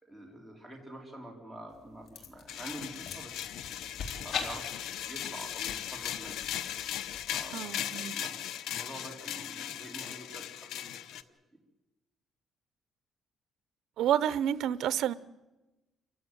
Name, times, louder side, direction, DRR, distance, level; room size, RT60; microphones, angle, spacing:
voice 1, 0.0-3.5 4.2-6.5 7.3-11.2, right 1 dB, ahead, 4.3 m, -47 dB
sound 1, 1.7-7.5, left 6 dB, 65° left, 3.4 m, -43 dB
sound 2, 2.5-11.2, left 11 dB, 85° left, 1.0 m, -38 dB
voice 2, 7.5-8.1 14.0-15.1, right 10 dB, 75° right, 0.9 m, -29 dB
27.5 x 15.5 x 9.3 m
cardioid pair, 135°, 0 cm